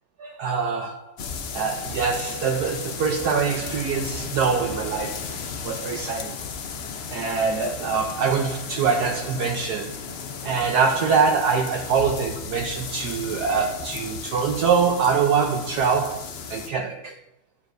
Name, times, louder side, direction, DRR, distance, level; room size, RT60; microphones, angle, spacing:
voice 1, 0.2-1.2 1.5-5.2 5.6-6.4 7.1-10.0 10.4-17.2, right 5 dB, 70° right, 1.1 m, -24 dB
sound 1, 1.2-16.7, left 6 dB, 80° left, 0.5 m, -35 dB
11.0 x 7.2 x 2.6 m
omnidirectional pair, 2.0 m